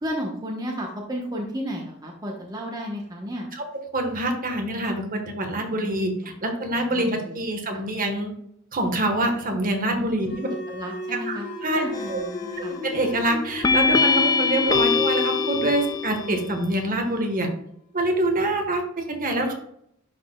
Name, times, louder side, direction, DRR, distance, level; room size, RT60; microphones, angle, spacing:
voice 1, 0.0-3.5 5.7-6.0 6.4-7.4 7.7-7.8 9.9-10.4 10.7-12.8, equal, 20° right, -1 dB, 1.0 m, -33 dB
voice 2, 3.9-6.1 6.4-8.3 8.7-10.5 11.3-12.2 12.6-17.5 17.9-19.5, right 1 dB, 40° right, 3 dB, 1.3 m, -25 dB
sound 1, 10.2-17.4, left 3 dB, 90° left, 1.6 m, -35 dB
sound 2, 11.9-12.4 13.6-16.4, left 4 dB, 20° left, 0.3 m, -22 dB
11.0 x 4.3 x 2.3 m, 0.72 s
head